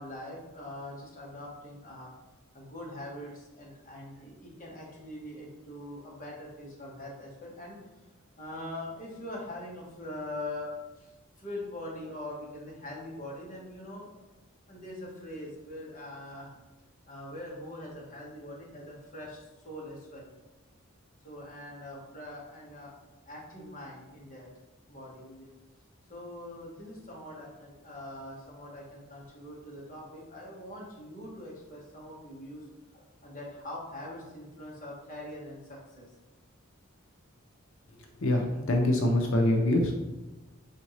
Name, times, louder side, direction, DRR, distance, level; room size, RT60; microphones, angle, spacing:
voice 1, 0.0-2.1 2.5-7.8 8.4-11.1 11.4-14.1 14.7-16.5 17.1-20.3 21.2-22.9 23.2-24.5 24.9-25.5 26.1-32.6 32.9-36.1, left 1 dB, 40° left, -4 dB, 1.3 m, -42 dB
voice 2, 38.2-39.9, left 1 dB, 70° left, 2 dB, 0.6 m, -24 dB
4.2 x 3.8 x 3.1 m, 1.1 s
head